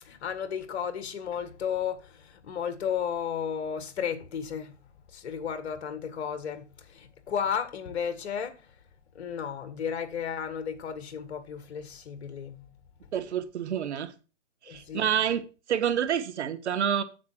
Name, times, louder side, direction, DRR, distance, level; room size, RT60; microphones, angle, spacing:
voice 1, 0.0-4.8 5.1-8.6 9.2-12.7 14.7-15.1, left 7 dB, 60° left, 1.8 m, -33 dB
voice 2, 13.1-14.1 14.6-15.4 15.7-17.0, right 9 dB, 60° right, 1.6 m, -28 dB
9.6 x 7.4 x 4.5 m
hypercardioid pair, 145°, 37 cm